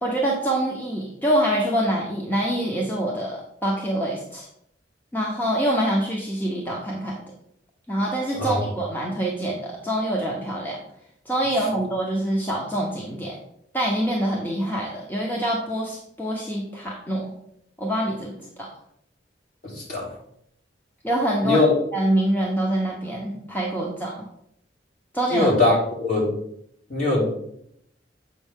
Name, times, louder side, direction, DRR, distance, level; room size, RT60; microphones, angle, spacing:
voice 1, 0.0-4.5 5.1-7.2 7.9-10.8 11.2-13.4 13.7-17.3 17.8-18.7 21.0-21.6 21.9-24.2 25.1-25.5, right 1 dB, 10° left, -2 dB, 0.9 m, -25 dB
voice 2, 19.6-20.1 21.4-21.7 25.3-26.3 26.9-27.2, left 2 dB, 45° left, -5 dB, 3.0 m, -21 dB
7.7 x 5.4 x 3.6 m, 0.73 s
head